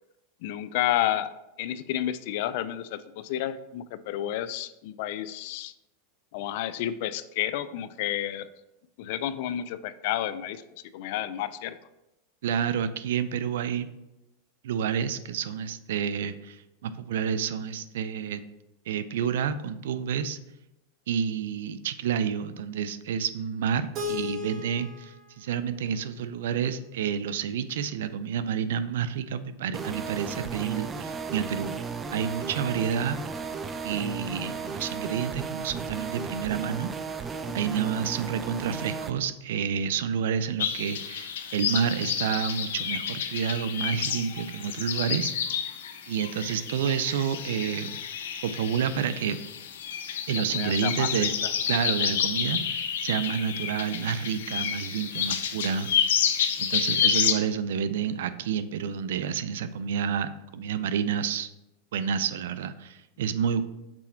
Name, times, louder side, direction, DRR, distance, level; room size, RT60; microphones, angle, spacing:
voice 1, 0.4-5.7 6.3-8.5 9.0-10.6 10.9-11.8 37.5-37.9 50.3-51.3, left 12 dB, 65° left, 14 dB, 0.4 m, -31 dB
voice 2, 12.4-13.9 14.6-18.4 18.9-20.4 21.1-31.8 32.1-33.2 33.8-36.9 37.5-45.3 46.1-48.0 48.4-49.4 50.3-51.3 51.7-55.9 56.6-61.5 61.9-63.6, right 7 dB, 80° right, 13 dB, 0.4 m, -29 dB
Keyboard (musical), 23.9-26.9, left 5 dB, 40° right, 1.1 m, -37 dB
sound 1, 29.7-39.1, right 5 dB, 20° right, 0.4 m, -35 dB
sound 2, 40.6-57.3, left 8 dB, 85° left, 0.8 m, -30 dB
6.1 x 4.2 x 4.4 m, 0.94 s
supercardioid pair, 130°, 0 cm